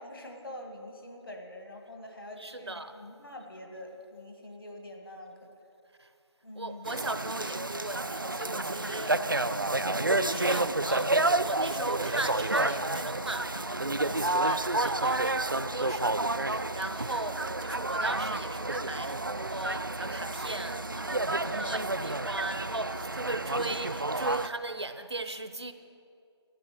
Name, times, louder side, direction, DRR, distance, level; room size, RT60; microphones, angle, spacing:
voice 1, 0.0-5.5 6.4-7.0 8.8-9.8 14.1-14.6 21.3-21.6 23.3-23.7, left 1 dB, 50° left, 2 dB, 1.9 m, -45 dB
voice 2, 2.4-2.9 6.0-6.1 6.6-9.5 10.2-25.7, right 2 dB, 70° right, 10 dB, 0.9 m, -37 dB
sound 1, 6.9-24.5, right 2 dB, 50° right, 0.4 m, -30 dB
12.0 x 9.2 x 6.9 m, 2.5 s
figure-of-eight pair, 175°, 15 cm